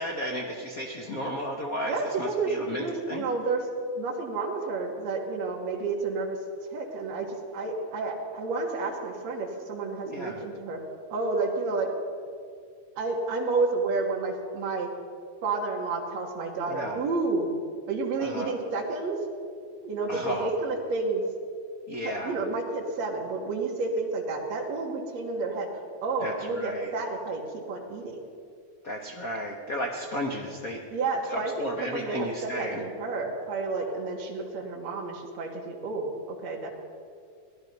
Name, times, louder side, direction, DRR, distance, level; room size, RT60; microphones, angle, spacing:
voice 1, 0.0-3.2 10.1-10.4 16.7-17.0 18.2-18.5 20.1-20.5 21.9-22.4 26.2-26.9 28.8-30.8 31.3-32.9, equal, 75° left, 1 dB, 0.8 m, -34 dB
voice 2, 1.8-3.6 4.0-6.4 6.7-7.3 7.5-10.8 11.1-11.9 13.0-14.9 15.4-17.5 17.9-19.2 19.8-21.2 22.0-25.7 26.0-27.4 27.7-28.2 30.9-36.7, right 3 dB, 65° right, -2 dB, 2.5 m, -30 dB
17.0 x 11.5 x 5.4 m, 2.2 s
omnidirectional pair, 3.4 m